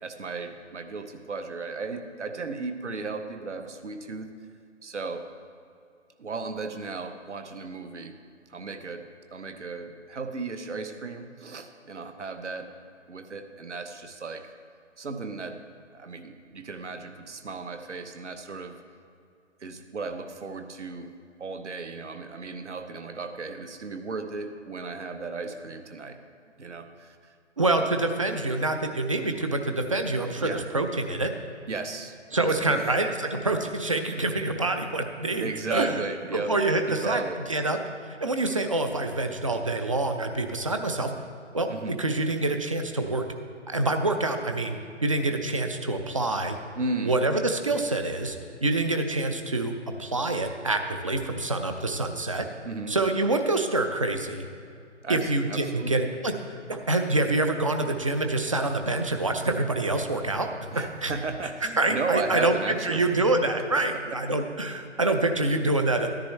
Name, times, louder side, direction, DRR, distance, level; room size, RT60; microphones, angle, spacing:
voice 1, 0.0-4.3 4.8-5.3 6.2-8.2 8.5-12.7 13.1-14.5 15.0-15.7 15.9-18.8 19.6-21.1 21.4-26.2 26.6-27.3 27.8-27.9 30.4-30.6 31.7-32.9 35.4-36.6 36.9-37.5 41.7-42.0 46.7-47.2 52.6-53.0 55.0-56.0 60.7-63.3 63.6-64.2, right 3 dB, 70° right, 7 dB, 1.0 m, -35 dB
voice 2, 27.6-31.3 32.3-36.0 36.3-37.2 37.5-37.8 38.2-41.1 41.5-43.2 43.7-46.6 47.0-49.7 50.0-52.4 52.9-54.4 55.1-56.3 56.7-60.5 61.0-61.1 61.8-66.1, right 2 dB, 30° right, 6 dB, 0.4 m, -26 dB
13.0 x 10.0 x 3.3 m, 2.4 s
figure-of-eight pair, 140°, 36 cm